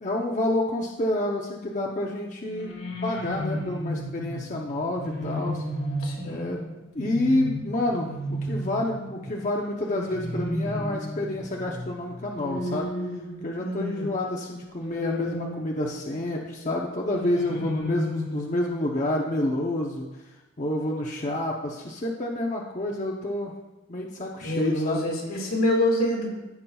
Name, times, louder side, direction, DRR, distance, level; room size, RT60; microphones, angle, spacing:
voice 1, 0.0-2.8 3.0-5.6 6.2-12.9 13.4-20.1 20.6-23.5 23.9-25.1, left 1 dB, 35° left, -1 dB, 0.7 m, -28 dB
sound 1, 2.5-14.1 14.8-16.1 17.1-18.7, equal, 55° left, 1.5 m, -33 dB
voice 2, 6.0-6.6 13.6-14.1 17.5-17.6 24.4-26.3, left 1 dB, 80° left, -2 dB, 2.2 m, -26 dB
15.0 x 5.6 x 2.3 m, 1.0 s
head